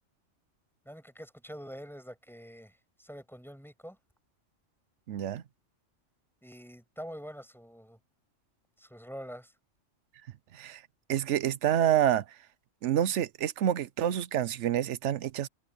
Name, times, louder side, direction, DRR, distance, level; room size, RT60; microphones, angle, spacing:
voice 1, 0.8-4.0 6.4-8.0 8.8-9.5, equal, ahead, 6.2 m, -45 dB
voice 2, 5.1-5.4 10.5-10.8 11.1-12.2 12.8-15.5, right 11 dB, 70° right, 1.0 m, -27 dB
omnidirectional pair, 1.3 m